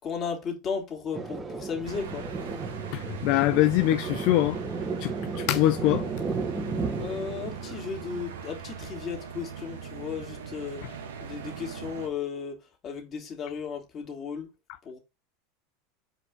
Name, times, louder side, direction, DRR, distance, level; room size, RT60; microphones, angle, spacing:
voice 1, 0.0-2.6 7.0-10.8 11.2-12.6 12.8-14.5 14.8-15.0, left 6 dB, 40° left, 2.7 m, -35 dB
Thunder, 1.1-8.2, right 4 dB, 25° right, 1.6 m, -34 dB
sound 1, 1.8-12.1, right 6 dB, 85° right, 1.3 m, -40 dB
voice 2, 2.9-4.6 5.0-6.0, left 15 dB, 60° left, 0.3 m, -23 dB
5.2 x 4.8 x 3.8 m
hypercardioid pair, 90°, 0 cm